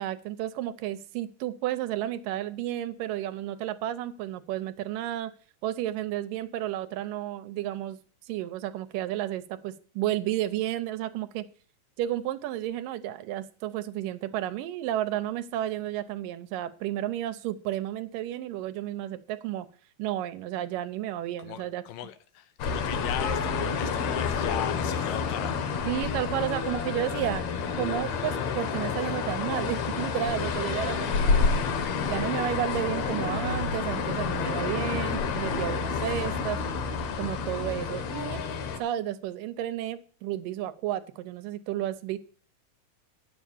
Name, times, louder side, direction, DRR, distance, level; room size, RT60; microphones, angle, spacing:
voice 1, 0.0-5.3 5.6-8.0 8.3-11.5 12.0-19.7 20.0-21.8 25.9-27.5 27.8-31.6 32.1-36.6 37.2-38.4 38.8-42.2, right 12 dB, 80° right, 2.4 m, -32 dB
voice 2, 21.4-26.3, left 11 dB, 85° left, 2.6 m, -38 dB
sound 1, 22.6-38.8, left 5 dB, 60° left, 2.2 m, -29 dB
9.5 x 7.1 x 7.2 m
omnidirectional pair, 3.9 m